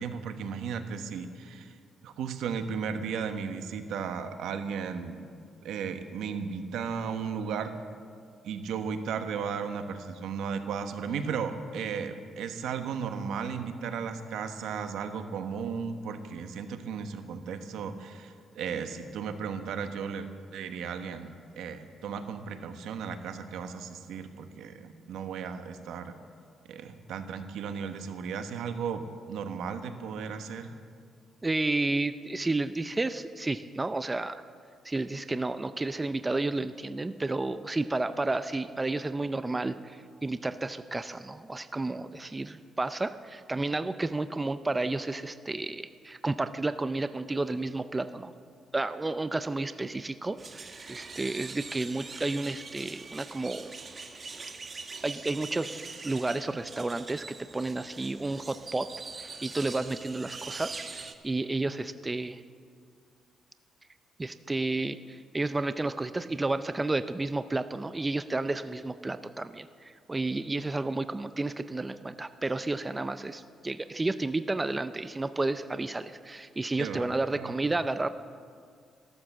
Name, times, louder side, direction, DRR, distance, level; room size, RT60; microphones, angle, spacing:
voice 1, 0.0-1.8 2.0-5.2 5.6-7.7 8.4-26.2 26.7-30.8 76.8-77.6, right 6 dB, 80° right, 8 dB, 1.2 m, -35 dB
voice 2, 31.4-34.4 34.8-48.3 48.7-53.7 55.0-58.9 59.2-62.4 64.2-78.1, right 2 dB, 15° right, 12 dB, 0.4 m, -31 dB
sound 1, 50.4-61.1, right 4 dB, 30° right, 1.1 m, -43 dB
14.5 x 12.5 x 7.3 m, 2.2 s
cardioid pair, 120°, 0 cm